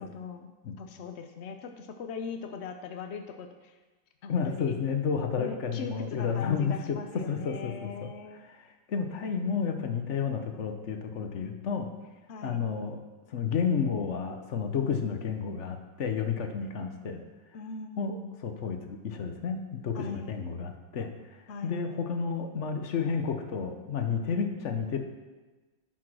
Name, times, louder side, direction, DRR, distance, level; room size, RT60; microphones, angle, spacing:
voice 1, 0.0-3.8 4.2-4.8 5.4-8.4 12.3-12.6 17.5-18.4 19.9-20.3 21.5-21.8, left 5 dB, 65° left, 6 dB, 0.6 m, -40 dB
voice 2, 4.3-7.0 7.3-8.1 8.6-11.9 12.4-13.0 13.3-17.2 18.0-18.2 18.4-21.1 21.6-25.0, left 6 dB, 50° left, 6 dB, 1.0 m, -31 dB
11.0 x 6.1 x 6.2 m, 1.2 s
omnidirectional pair, 1.9 m